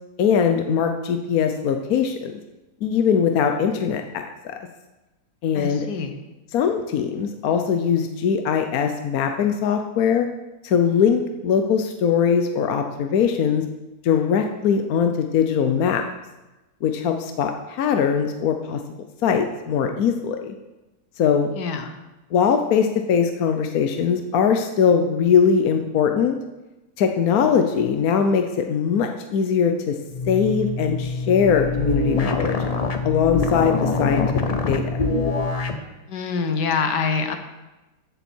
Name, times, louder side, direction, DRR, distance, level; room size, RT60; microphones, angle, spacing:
voice 1, 0.2-2.4 2.8-4.2 5.4-5.9 6.5-10.3 10.6-13.6 14.0-16.0 16.8-18.8 19.2-20.5 21.2-21.5 22.3-26.4 27.0-30.0 30.3-32.6 33.0-34.2 34.7-35.1, left 7 dB, 65° left, 5 dB, 1.2 m, -21 dB
voice 2, 5.5-6.1 21.6-21.9 36.1-37.4, left 5 dB, 90° left, 7 dB, 1.6 m, -25 dB
sound 1, 30.1-35.8, left 3 dB, 40° left, 0.5 m, -24 dB
14.0 x 7.1 x 4.4 m, 1.1 s
omnidirectional pair, 1.8 m